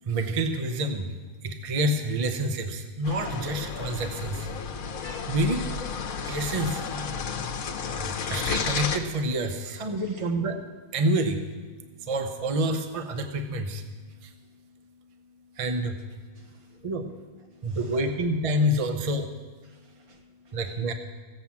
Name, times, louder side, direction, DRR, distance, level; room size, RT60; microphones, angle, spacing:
voice 1, 0.0-4.5 5.3-5.6 6.3-6.9 7.9-10.6 10.9-11.4 12.0-13.8 14.2-14.3 15.5-16.0 16.7-17.1 17.6-19.3 20.5-20.9, right 1 dB, 30° right, 6 dB, 0.7 m, -28 dB
sound 1, 3.0-9.0, left 6 dB, 65° left, 1.3 m, -32 dB
voice 2, 9.5-10.3 16.4-16.8 17.6-18.1 18.8-18.9 19.6-20.6, right 2 dB, 65° right, 2 dB, 2.0 m, -55 dB
15.0 x 8.0 x 7.2 m, 1.5 s
omnidirectional pair, 1.7 m